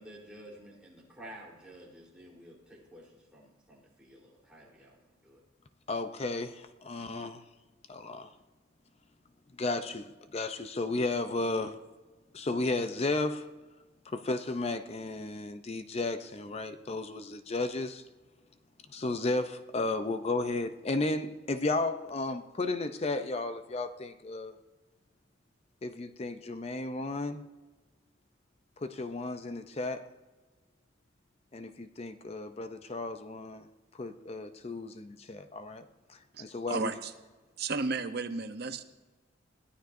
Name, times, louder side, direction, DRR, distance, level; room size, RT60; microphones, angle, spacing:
voice 1, 0.0-5.4, equal, 5° right, 3.7 m, -51 dB
voice 2, 5.9-7.4 7.9-8.3 9.6-11.8 12.3-13.5 14.1-18.0 18.9-24.6 25.8-27.5 28.8-30.1 31.5-33.7 33.9-35.8 36.1-36.9, left 2 dB, 30° left, 0.5 m, -34 dB
voice 3, 36.3-37.1 37.6-38.9, right 4 dB, 55° right, 0.8 m, -34 dB
21.0 x 14.0 x 2.6 m
head